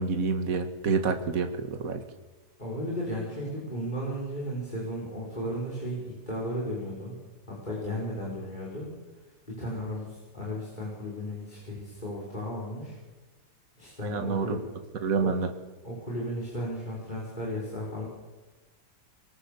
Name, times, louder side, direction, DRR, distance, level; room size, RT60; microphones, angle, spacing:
voice 1, 0.0-2.0 14.0-14.6 15.0-15.5, right 5 dB, 55° right, 6 dB, 2.1 m, -28 dB
voice 2, 2.6-7.1 7.5-8.9 9.5-13.0 13.8-14.6 15.2-15.3 15.8-18.0, equal, 25° left, -3 dB, 6.4 m, -34 dB
27.0 x 23.5 x 7.2 m, 1.2 s
omnidirectional pair, 1.8 m